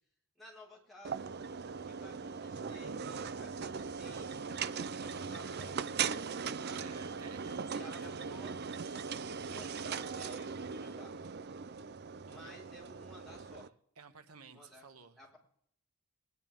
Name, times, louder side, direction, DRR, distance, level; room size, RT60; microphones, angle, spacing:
voice 1, 0.4-1.3 1.7-4.3 5.0-5.8 6.8-7.3 7.7-9.0 9.5-11.2 12.3-13.7 14.5-14.9 15.2-15.4, left 1 dB, ahead, -7 dB, 4.7 m, -55 dB
sound 1, 1.1-13.7, right 6 dB, 45° right, 0.4 m, -39 dB
voice 2, 6.6-8.2 12.3-12.5 14.0-15.2, right 5 dB, 80° right, 8 dB, 1.2 m, -53 dB
20.5 x 11.0 x 3.6 m, 0.65 s
head